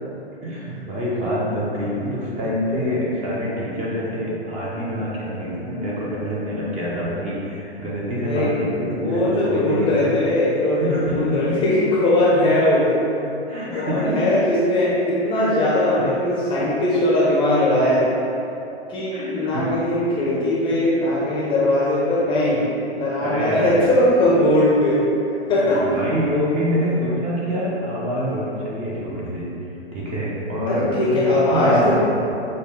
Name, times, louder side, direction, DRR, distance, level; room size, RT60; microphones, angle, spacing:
voice 1, 0.4-9.9 10.8-11.6 13.5-14.4 15.6-15.7 16.0-16.1 16.6-16.7 19.1-19.7 23.2-23.7 25.8-29.5 29.9-32.0, equal, 20° right, -6 dB, 0.7 m, -26 dB
voice 2, 8.9-13.3 13.7-18.1 18.9-22.7 22.9-25.0 25.5-25.9 30.7-32.0, left 1 dB, 15° left, -7 dB, 0.7 m, -20 dB
6.4 x 2.2 x 3.6 m, 2.8 s
figure-of-eight pair, 115°, 34 cm